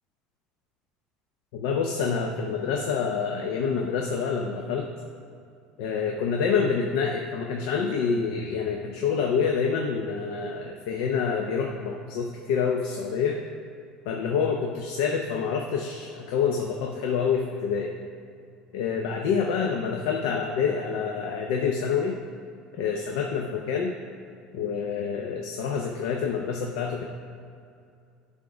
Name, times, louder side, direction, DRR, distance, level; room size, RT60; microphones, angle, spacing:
voice 1, 1.5-4.9 5.8-13.4 14.1-17.9 18.7-22.2 22.7-23.9 24.5-27.0, left 6 dB, 80° left, 2 dB, 0.6 m, -27 dB
10.5 x 3.6 x 5.0 m, 2.4 s
supercardioid pair, 120°, 3 cm